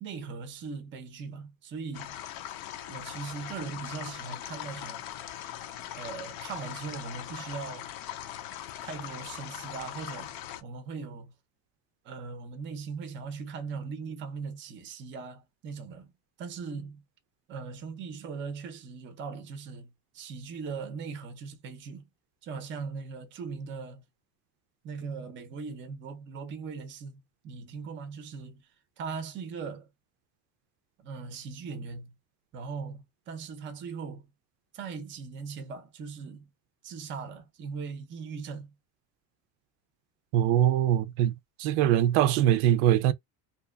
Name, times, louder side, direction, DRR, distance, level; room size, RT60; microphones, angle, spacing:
voice 1, 0.0-2.2 2.9-5.1 5.9-7.9 8.8-10.3 10.6-11.3 12.0-16.1 16.4-17.0 17.5-22.1 22.4-24.0 24.8-28.7 29.0-29.9 31.0-32.1 32.5-34.3 34.7-36.5 36.8-38.7, right 5 dB, 30° right, 0.5 m, -39 dB
sound 1, 1.9-10.6, left 12 dB, 55° left, 0.5 m, -40 dB
voice 2, 40.3-43.1, right 11 dB, 85° right, 0.5 m, -23 dB
2.7 x 2.3 x 2.2 m
cardioid pair, 170°, 44 cm